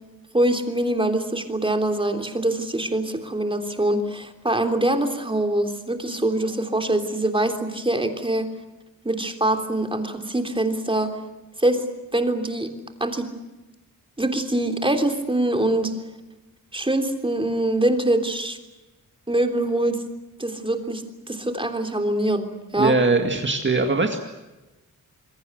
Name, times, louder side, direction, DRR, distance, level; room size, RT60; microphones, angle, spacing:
voice 1, 0.3-8.5 9.0-11.2 11.6-11.8 12.1-12.7 13.0-13.3 14.2-16.0 16.7-18.6 19.3-20.0 20.4-23.0, right 1 dB, 15° right, 5 dB, 3.4 m, -24 dB
voice 2, 22.8-24.2, right 3 dB, 35° right, 3 dB, 2.2 m, -21 dB
27.0 x 22.5 x 8.1 m, 1.1 s
wide cardioid pair, 115°, 32 cm